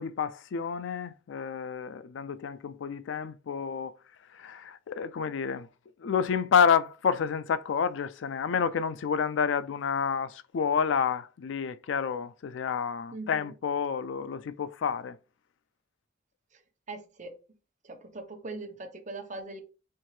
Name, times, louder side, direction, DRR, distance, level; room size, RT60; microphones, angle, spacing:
voice 1, 0.0-4.0 4.3-5.7 6.0-15.2, left 6 dB, 75° left, 0.4 m, -29 dB
voice 2, 13.1-13.5 16.5-16.6 16.9-17.4 17.8-19.6, right 2 dB, 40° right, 0.9 m, -41 dB
4.4 x 3.6 x 3.2 m
head